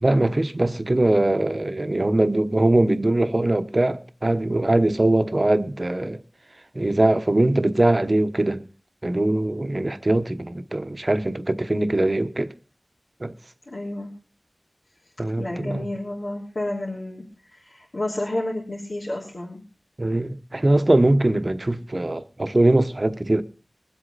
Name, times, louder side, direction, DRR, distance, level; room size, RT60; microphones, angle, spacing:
voice 1, 0.0-6.2 6.7-8.6 9.0-12.5 13.2-13.3 15.2-15.9 20.0-23.4, right 1 dB, 45° right, 1.0 m, -21 dB
voice 2, 13.7-14.1 15.4-19.6, left 1 dB, 75° left, 3.1 m, -30 dB
22.5 x 8.1 x 4.0 m
wide cardioid pair, 50°, 0 cm